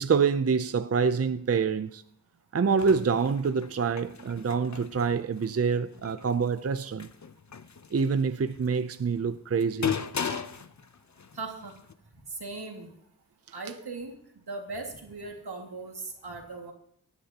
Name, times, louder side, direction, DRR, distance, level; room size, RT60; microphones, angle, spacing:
voice 1, 0.0-2.0 2.5-7.1 7.9-9.9 10.2-10.4, right 5 dB, 40° right, 0.5 m, -26 dB
sound 1, 2.6-11.9, left 7 dB, 50° left, 0.7 m, -38 dB
voice 2, 11.3-11.7 12.3-12.9 13.5-14.1 14.5-16.7, right 3 dB, 85° right, 2.1 m, -38 dB
18.5 x 9.8 x 2.9 m
wide cardioid pair, 65°, 38 cm